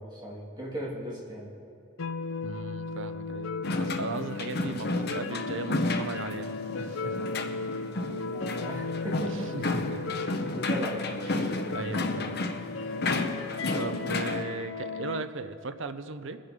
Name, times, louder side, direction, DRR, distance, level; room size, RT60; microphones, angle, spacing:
voice 1, 0.0-1.5 8.1-9.7 10.4-11.5, right 1 dB, 20° right, -4 dB, 2.4 m, -38 dB
sound 1, 2.0-15.2, left 4 dB, 70° left, 0.5 m, -36 dB
voice 2, 2.4-7.3 8.0-8.1 9.3-10.0 11.3-12.5 12.8-13.0 13.7-16.4, right 3 dB, 60° right, 10 dB, 0.6 m, -38 dB
sound 2, 3.6-14.4, left 2 dB, 50° left, 0.8 m, -32 dB
22.0 x 7.6 x 5.2 m, 2.7 s
head